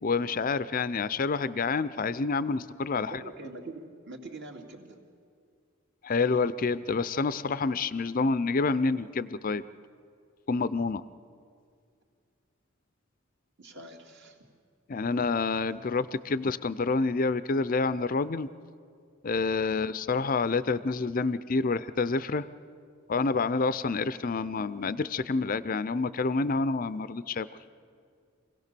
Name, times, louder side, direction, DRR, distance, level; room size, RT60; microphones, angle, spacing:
voice 1, 0.0-3.2 6.0-9.6 10.5-11.0 14.9-18.5 19.2-22.5 23.1-27.5, left 4 dB, 40° left, 15 dB, 0.5 m, -28 dB
voice 2, 3.0-5.0 13.6-14.5, right 2 dB, 55° right, 2 dB, 2.4 m, -44 dB
26.0 x 17.0 x 6.8 m, 2.2 s
head